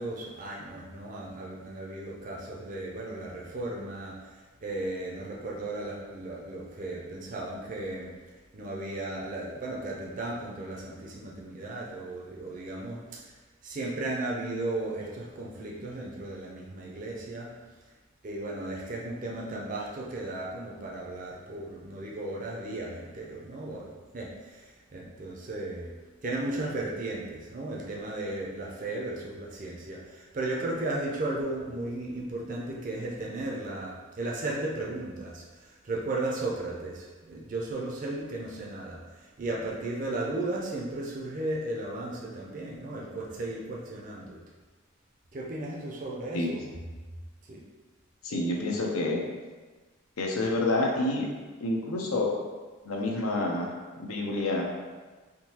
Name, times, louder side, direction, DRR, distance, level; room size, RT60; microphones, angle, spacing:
voice 1, 0.0-8.1 8.5-13.3 13.6-17.5 18.2-25.9 26.2-44.4 45.3-46.6 47.5-47.6, right 2 dB, 40° right, -3 dB, 0.4 m, -35 dB
voice 2, 48.2-49.2 50.2-51.3 51.6-52.3 52.8-53.7 54.0-54.6, left 2 dB, 90° left, -1 dB, 0.6 m, -28 dB
3.7 x 2.6 x 2.8 m, 1.3 s
head